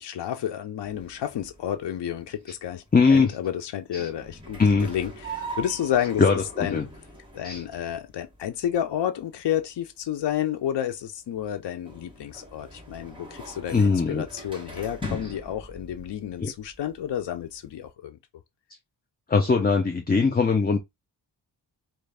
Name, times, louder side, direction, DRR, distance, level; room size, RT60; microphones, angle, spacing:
voice 1, 0.0-2.8 3.1-6.8 7.3-18.2, left 10 dB, 75° left, 0.6 m, -30 dB
sound 1, 0.8-17.9, right 3 dB, 10° right, 1.2 m, -44 dB
voice 2, 2.9-3.3 3.9-4.0 4.6-4.9 6.2-6.9 7.4-7.6 13.7-14.3 15.1-15.2 16.4-16.5 19.3-20.8, left 4 dB, 25° left, 0.5 m, -21 dB
4.4 x 2.4 x 3.3 m
wide cardioid pair, 145°, 42 cm